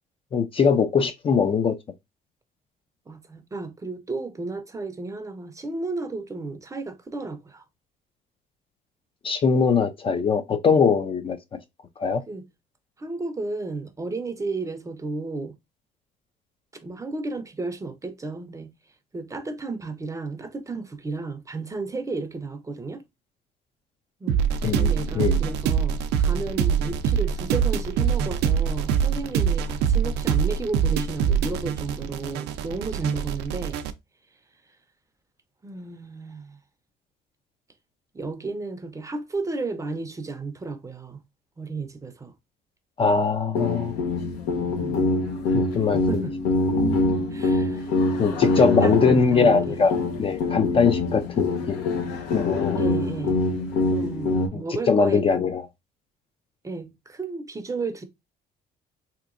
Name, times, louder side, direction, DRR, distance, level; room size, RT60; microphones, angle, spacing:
voice 1, 0.3-1.8 9.2-11.4 12.0-12.2 24.6-25.4 43.0-43.9 45.5-46.2 48.2-51.9 52.3-52.8 54.5-54.6 54.9-55.6, left 5 dB, 35° left, 0.4 m, -21 dB
voice 2, 3.1-7.6 12.3-12.4 13.0-15.5 16.8-18.7 19.1-23.0 24.2-24.4 24.7-33.8 35.6-36.6 38.1-41.2 41.6-42.3 44.6-45.0 45.9-46.3 47.3-47.8 48.2-49.8 52.8-53.4 53.9-55.2 56.6-58.0, right 3 dB, 20° right, 0.5 m, -33 dB
sound 1, 24.3-33.9, right 7 dB, 85° right, 0.4 m, -24 dB
sound 2, 43.5-54.5, left 2 dB, 85° left, 0.8 m, -25 dB
3.3 x 2.9 x 2.4 m
cardioid pair, 110°, 17 cm